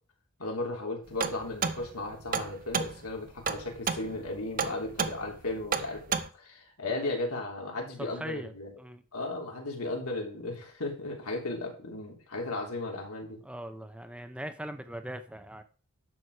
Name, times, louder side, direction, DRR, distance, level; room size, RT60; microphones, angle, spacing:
voice 1, 0.4-6.0 6.3-8.7 9.1-13.4, left 2 dB, 85° left, 1 dB, 3.2 m, -35 dB
sound 1, 1.2-6.3, right 6 dB, 40° right, 0.8 m, -32 dB
voice 2, 8.1-8.5 8.8-9.0 13.4-15.6, right 1 dB, 5° right, 9 dB, 0.7 m, -40 dB
11.0 x 6.9 x 4.8 m, 0.39 s
head